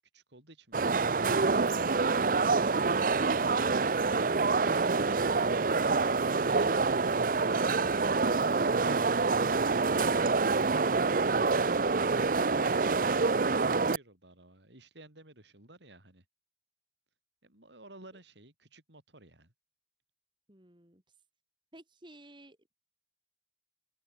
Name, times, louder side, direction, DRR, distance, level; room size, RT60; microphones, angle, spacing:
voice 1, 0.0-4.0 13.4-16.2 17.4-19.5, right 1 dB, 75° right, 7.1 m, -54 dB
sound 1, 0.7-14.0, right 4 dB, 50° right, 0.6 m, -26 dB
voice 2, 20.5-21.0 21.7-22.8, right 1 dB, 25° right, 3.3 m, -55 dB
open air
head